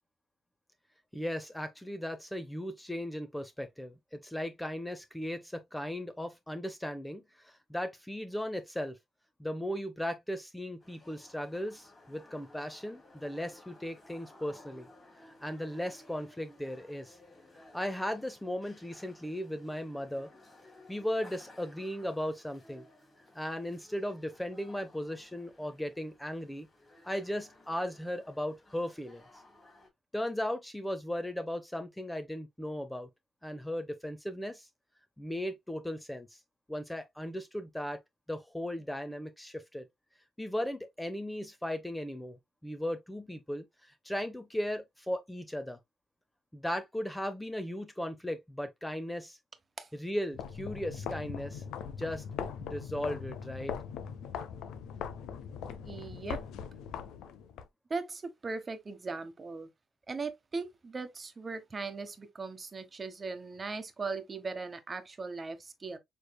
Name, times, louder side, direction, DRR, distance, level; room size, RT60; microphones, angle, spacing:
voice 1, 1.1-9.0 9.4-14.9 15.2-17.2 17.7-20.3 20.9-22.9 23.3-26.7 27.0-29.2 30.1-33.1 33.4-34.7 35.2-36.4 36.7-38.0 38.3-39.9 40.4-42.4 42.6-45.8 46.5-49.4 49.9-52.2 52.6-53.7, left 1 dB, 5° left, 0.6 m, -37 dB
sound 1, 10.8-29.9, left 2 dB, 20° left, 3.4 m, -58 dB
sound 2, 50.3-57.7, left 7 dB, 85° left, 0.6 m, -40 dB
voice 2, 55.8-56.4 57.9-59.7 60.1-66.0, right 4 dB, 30° right, 1.1 m, -39 dB
6.6 x 3.2 x 2.2 m
cardioid pair, 90°, 0 cm